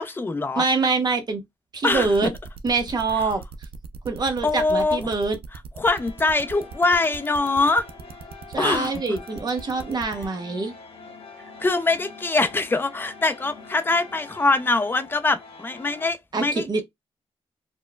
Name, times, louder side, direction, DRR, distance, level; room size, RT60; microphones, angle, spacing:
voice 1, 0.0-0.6 1.8-2.3 4.4-5.0 5.8-7.9 8.6-8.9 11.6-16.8, left 3 dB, 20° left, 0.4 m, -23 dB
voice 2, 0.6-1.4 1.7-2.3 2.6-3.4 4.0-5.4 8.5-10.7 16.3-16.8, right 4 dB, 40° right, 0.8 m, -24 dB
sound 1, 1.9-10.3, right 6 dB, 60° right, 0.4 m, -40 dB
sound 2, 5.9-16.1, left 4 dB, 65° left, 1.0 m, -44 dB
4.2 x 2.2 x 2.2 m
wide cardioid pair, 145°, 10 cm